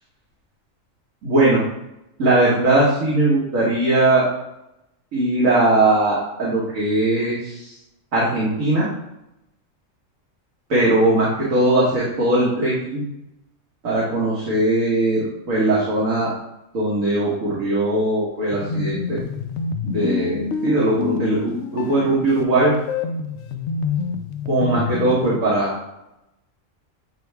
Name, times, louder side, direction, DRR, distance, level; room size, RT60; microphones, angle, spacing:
voice 1, 1.2-1.6 2.2-4.3 5.1-7.7 8.1-8.9 10.7-13.0 13.8-16.3 16.7-19.2 19.8-22.7 24.5-25.7, right 2 dB, 80° right, -7 dB, 1.8 m, -19 dB
sound 1, 18.5-25.4, left 5 dB, 65° left, 0.8 m, -27 dB
8.5 x 3.3 x 3.4 m, 0.86 s
omnidirectional pair, 1.4 m